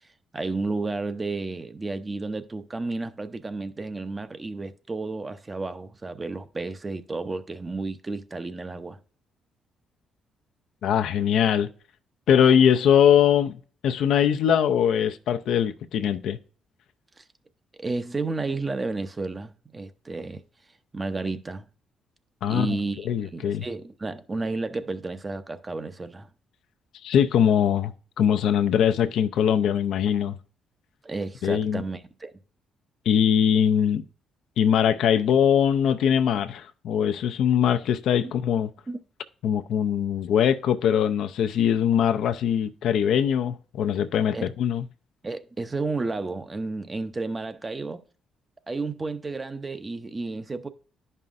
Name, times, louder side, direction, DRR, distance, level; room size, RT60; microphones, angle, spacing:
voice 1, 0.3-9.0 17.2-17.3 17.8-20.4 20.9-21.6 22.5-26.3 31.0-32.3 38.9-39.0 44.3-44.5 45.2-48.0 48.7-50.7, right 3 dB, 25° right, 0.6 m, -32 dB
voice 2, 10.8-11.7 12.3-13.6 13.8-16.4 22.4-22.7 23.1-23.6 27.0-30.4 31.4-31.8 33.1-34.0 34.6-38.7 39.4-44.8, left 8 dB, 75° left, 0.4 m, -22 dB
10.5 x 5.5 x 2.5 m
cardioid pair, 90°, 0 cm